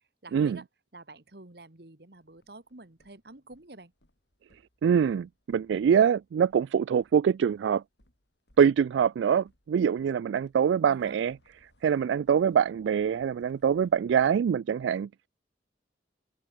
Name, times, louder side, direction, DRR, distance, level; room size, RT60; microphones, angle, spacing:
voice 1, 0.2-0.7 0.9-3.9 10.9-11.2, right 2 dB, 65° right, 1.9 m, -48 dB
sound 1, 2.1-14.3, left 1 dB, 75° left, 7.8 m, -68 dB
voice 2, 4.8-7.8 8.6-11.4 11.8-15.1, right 7 dB, 90° right, 0.3 m, -24 dB
head